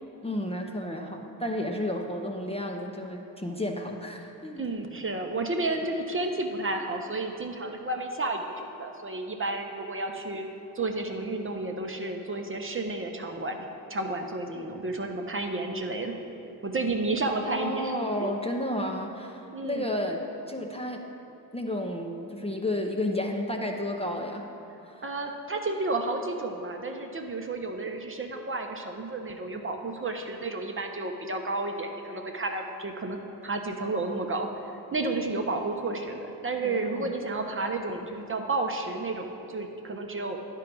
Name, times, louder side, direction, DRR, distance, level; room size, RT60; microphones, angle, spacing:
voice 1, 0.2-4.6 17.5-21.0 21.5-24.4 24.9-25.1 35.0-35.1 36.6-37.1, left 1 dB, 15° left, 1 dB, 0.7 m, -32 dB
voice 2, 4.6-10.5 10.7-16.1 16.6-18.3 19.5-19.9 25.0-34.5 34.9-40.4, right 2 dB, 25° right, 3 dB, 0.7 m, -31 dB
10.0 x 4.6 x 5.3 m, 2.9 s
supercardioid pair, 60°, 47 cm